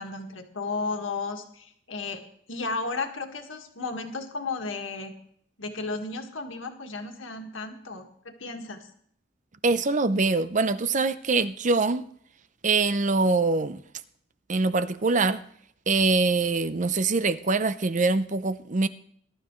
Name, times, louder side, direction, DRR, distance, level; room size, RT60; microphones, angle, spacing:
voice 1, 0.0-2.2 2.5-5.1 5.6-8.1 8.4-8.9, left 3 dB, 80° left, 1.9 m, -33 dB
voice 2, 9.6-12.0 12.6-13.8 14.5-15.4 15.9-18.9, right 3 dB, 40° right, 0.7 m, -24 dB
21.0 x 12.0 x 3.2 m
head